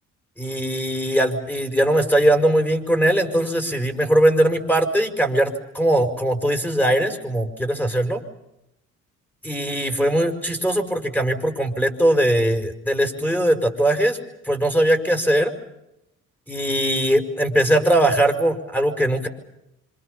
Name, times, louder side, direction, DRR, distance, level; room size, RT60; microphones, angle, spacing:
voice 1, 0.4-8.2 9.4-14.2 14.4-15.5 16.5-19.3, right 1 dB, 5° left, 6 dB, 6.0 m, -20 dB
28.0 x 27.0 x 7.0 m, 0.84 s
cardioid pair, 90°, 30 cm